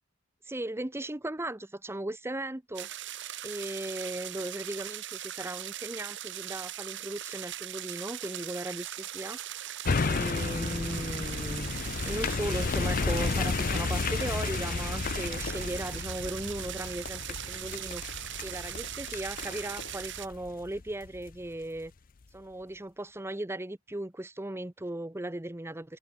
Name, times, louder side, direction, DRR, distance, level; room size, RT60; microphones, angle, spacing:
voice 1, 0.4-2.9 3.4-9.4 10.0-21.9 22.3-26.0, right 1 dB, 10° right, 0.8 m, -37 dB
sound 1, 2.7-20.3, right 12 dB, 60° right, 2.2 m, -40 dB
sound 2, 8.7-18.9, right 8 dB, 85° right, 5.2 m, -54 dB
sound 3, 9.9-21.3 21.8-21.9, left 4 dB, 45° left, 0.6 m, -32 dB
head